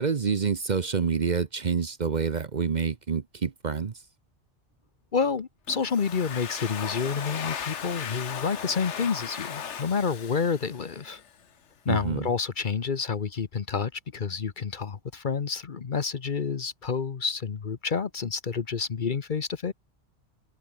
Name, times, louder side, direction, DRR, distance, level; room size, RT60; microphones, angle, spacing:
voice 1, 0.0-3.9 11.9-12.3, right 5 dB, 45° right, 0.9 m, -27 dB
voice 2, 5.1-11.2 11.9-19.7, left 5 dB, 45° left, 1.0 m, -29 dB
Domestic sounds home sounds, 5.7-11.3, left 7 dB, 85° left, 1.4 m, -37 dB
omnidirectional pair, 1.2 m